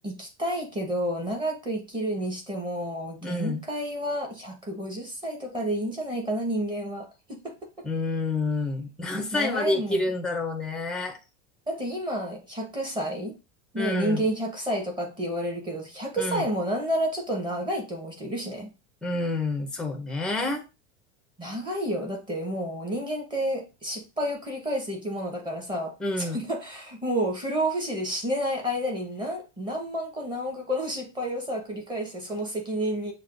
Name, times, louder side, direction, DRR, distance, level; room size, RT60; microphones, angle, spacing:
voice 1, 0.0-7.5 9.3-10.1 11.7-13.3 13.7-18.7 21.4-33.1, equal, 15° right, 1.0 m, -30 dB
voice 2, 3.2-3.6 7.8-11.2 13.7-14.3 16.2-16.5 19.0-20.6 26.0-26.4, left 2 dB, 5° left, 0.5 m, -28 dB
6.5 x 2.2 x 2.5 m
supercardioid pair, 150°, 33 cm